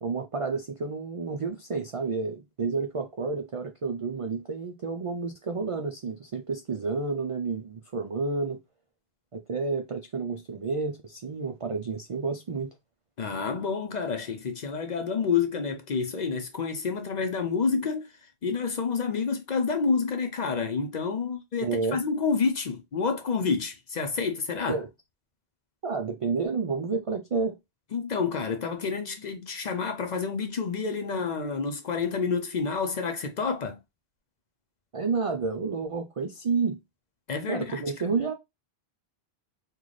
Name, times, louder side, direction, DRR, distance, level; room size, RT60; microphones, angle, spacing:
voice 1, 0.0-8.6 9.3-12.7 21.6-22.0 24.7-24.9 25.8-27.6 34.9-36.8 37.5-38.3, right 4 dB, 60° right, 0.3 m, -30 dB
voice 2, 13.2-18.1 18.4-24.8 27.9-33.8 37.3-37.8, left 5 dB, 50° left, 0.6 m, -29 dB
3.9 x 2.3 x 3.1 m
omnidirectional pair, 1.1 m